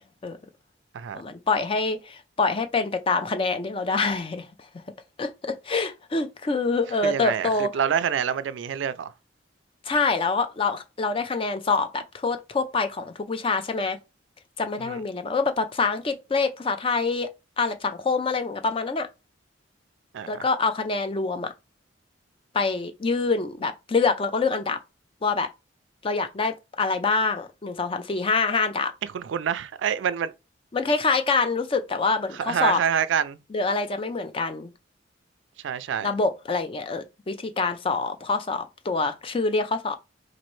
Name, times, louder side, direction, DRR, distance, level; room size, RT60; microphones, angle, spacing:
voice 1, 1.1-4.5 5.2-7.7 9.9-14.0 14.6-17.3 17.6-19.1 20.3-21.5 22.5-24.8 25.2-25.5 26.0-28.9 30.7-32.8 33.5-34.7 36.0-39.9, left 4 dB, 30° left, 0.4 m, -25 dB
voice 2, 7.0-9.1 14.8-15.0 20.1-20.4 29.1-30.3 32.3-33.4 35.6-36.1, right 8 dB, 70° right, 0.3 m, -27 dB
4.1 x 2.6 x 3.1 m
head